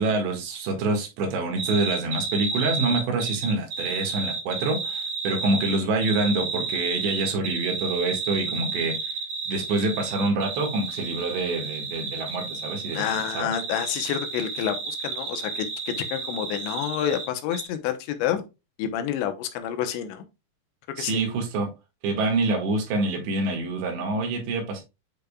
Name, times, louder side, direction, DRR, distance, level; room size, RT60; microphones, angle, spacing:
voice 1, 0.0-9.2 9.5-13.0 13.3-13.5 21.0-21.7 22.0-24.8, right 3 dB, 75° right, 4.0 m, -26 dB
sound 1, 1.6-17.3 17.5-17.7, right 4 dB, 55° right, 2.1 m, -32 dB
voice 2, 12.9-15.7 16.1-18.4 18.8-20.2 21.0-21.2, left 10 dB, 85° left, 3.2 m, -28 dB
9.1 x 5.2 x 2.3 m
omnidirectional pair, 5.1 m